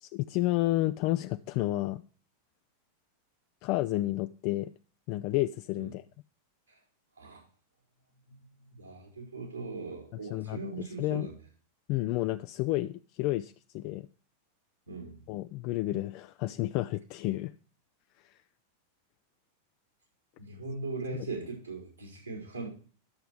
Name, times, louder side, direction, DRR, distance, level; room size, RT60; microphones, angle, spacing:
voice 1, 0.0-2.0 3.6-4.7 5.1-6.0 10.3-10.6 11.0-11.3 11.9-14.1 15.3-17.5 18.2-18.3, left 17 dB, 45° left, 10 dB, 0.4 m, -30 dB
voice 2, 8.7-11.3 14.9-15.2 20.4-22.7, right 3 dB, 85° right, -6 dB, 4.6 m, -39 dB
11.5 x 6.9 x 4.7 m, 0.41 s
figure-of-eight pair, 90°, 0 cm